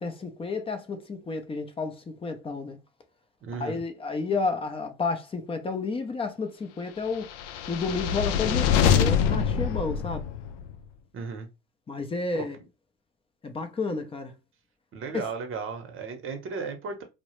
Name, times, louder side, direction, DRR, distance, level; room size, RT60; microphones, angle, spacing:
voice 1, 0.0-2.8 3.6-7.3 7.7-10.2 11.9-12.6 13.4-14.3 15.1-15.2, left 4 dB, 15° left, 0.5 m, -31 dB
voice 2, 3.4-3.8 11.1-11.5 12.3-12.7 14.9-17.0, right 5 dB, 35° right, 0.8 m, -35 dB
sound 1, 7.3-10.7, left 8 dB, 80° left, 0.5 m, -24 dB
2.3 x 2.1 x 3.0 m
supercardioid pair, 100°, 36 cm